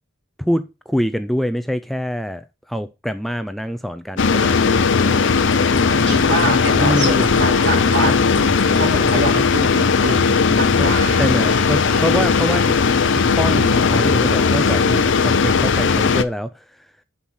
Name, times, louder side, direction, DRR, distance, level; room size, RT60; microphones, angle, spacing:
voice 1, 0.4-4.6 6.7-7.3 10.8-10.9 11.2-12.7 13.1-16.5, equal, ahead, 0.4 m, -24 dB
sound 1, 4.2-16.2, left 5 dB, 65° left, 0.7 m, -17 dB
sound 2, 4.7-15.1, equal, 30° right, 1.8 m, -35 dB
voice 2, 5.9-8.3 8.7-11.2, right 1 dB, 60° right, 3.5 m, -25 dB
sound 3, 7.0-9.8, left 2 dB, 30° left, 4.0 m, -41 dB
7.3 x 5.5 x 6.2 m
head